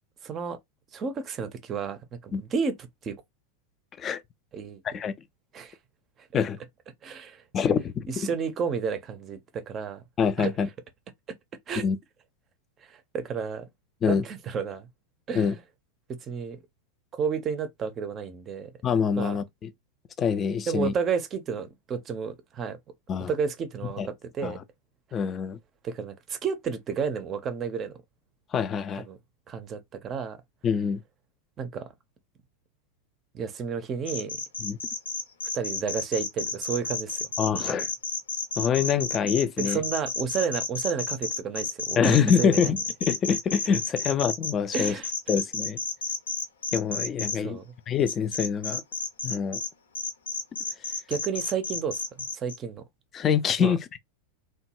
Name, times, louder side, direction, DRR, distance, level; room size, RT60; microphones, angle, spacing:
voice 1, 0.2-0.6 0.9-2.7 3.0-3.2 4.5-4.8 5.5-5.8 7.0-7.4 8.1-10.0 10.4-10.5 11.7-11.9 12.8-13.7 14.1-14.9 15.3-15.6 16.1-16.6 17.1-18.7 19.2-19.4 20.7-22.8 23.3-24.6 25.8-28.0 28.9-29.2 29.5-30.4 31.6-31.9 33.3-34.4 35.5-37.3 37.5-37.9 39.6-42.7 44.7-45.1 47.4-47.7 51.1-52.0 52.3-52.8 53.6-53.7, right 6 dB, 25° right, 0.5 m, -31 dB
voice 2, 7.5-8.3 10.2-10.7 11.8-12.0 14.0-14.2 15.3-15.5 18.8-19.7 20.2-20.9 23.1-23.3 24.0-24.1 24.4-24.6 25.1-25.6 28.5-29.0 30.6-31.0 34.6-34.8 37.4-37.9 38.6-39.8 42.0-45.0 45.3-45.8 46.7-47.6 47.9-48.8 49.2-49.6 53.1-54.0, left 7 dB, 25° left, 0.4 m, -25 dB
sound 1, 34.1-47.4 48.1-49.7 49.9-52.6, left 4 dB, 70° left, 0.7 m, -31 dB
2.8 x 2.2 x 2.9 m
figure-of-eight pair, 90°, 0 cm